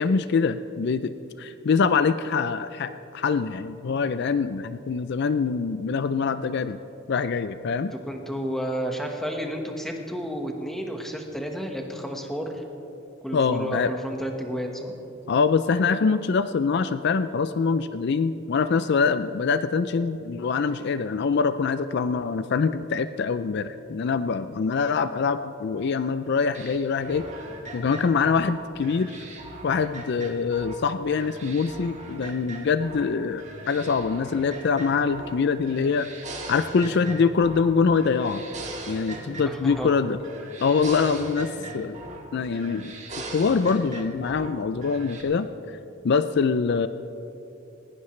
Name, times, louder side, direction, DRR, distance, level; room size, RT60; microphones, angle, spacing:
voice 1, 0.0-6.8 7.1-7.9 13.3-13.9 15.3-27.3 27.7-29.2 29.6-36.1 36.5-38.4 38.9-40.2 40.6-41.5 41.7-42.0 42.3-42.9 43.3-45.8 46.0-46.9, left 5 dB, 55° left, 12 dB, 0.4 m, -24 dB
voice 2, 8.1-12.6 13.2-14.9 39.4-39.9 45.7-45.8, equal, ahead, 2 dB, 1.3 m, -31 dB
sound 1, 26.5-30.8 31.1-33.1 33.4-35.4 35.7-37.7 38.0-40.0 40.2-42.3 42.5-44.5 44.8-45.2, right 2 dB, 35° right, 1.7 m, -39 dB
19.0 x 17.5 x 3.2 m, 2.9 s
head